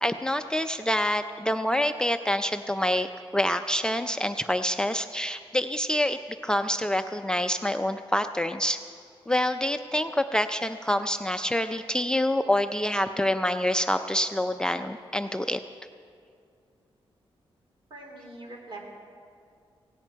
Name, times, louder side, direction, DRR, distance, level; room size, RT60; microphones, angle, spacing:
voice 1, 0.0-8.8 9.3-15.6, left 1 dB, 10° left, 7 dB, 0.4 m, -26 dB
voice 2, 17.9-18.8, right 2 dB, 55° right, 0 dB, 3.5 m, -42 dB
18.0 x 17.0 x 4.6 m, 2.3 s
wide cardioid pair, 125°, 10 cm